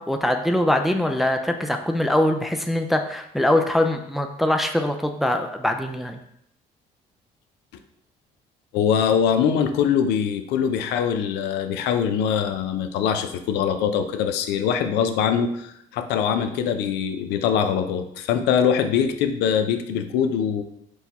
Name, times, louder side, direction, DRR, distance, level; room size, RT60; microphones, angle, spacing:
voice 1, 0.0-6.2, left 1 dB, ahead, 5 dB, 0.3 m, -22 dB
voice 2, 8.7-20.6, left 7 dB, 85° left, 8 dB, 0.4 m, -23 dB
4.6 x 2.2 x 4.0 m, 0.74 s
cardioid pair, 110°, 17 cm